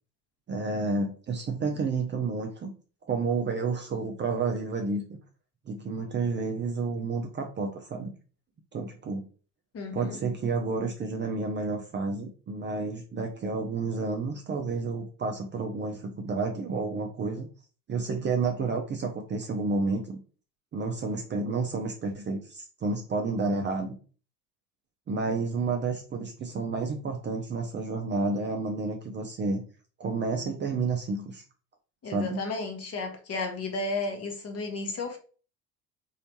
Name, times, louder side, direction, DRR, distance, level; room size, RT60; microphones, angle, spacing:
voice 1, 0.5-2.7 3.1-5.2 5.7-8.1 8.7-9.3 9.9-17.5 17.9-20.2 20.7-23.9 25.1-29.6 30.0-31.4 32.1-32.4, right 3 dB, 25° right, 0.6 m, -30 dB
voice 2, 9.7-10.2 32.0-35.2, left 3 dB, 35° left, 1.1 m, -33 dB
3.2 x 2.8 x 2.8 m
hypercardioid pair, 70°, 44 cm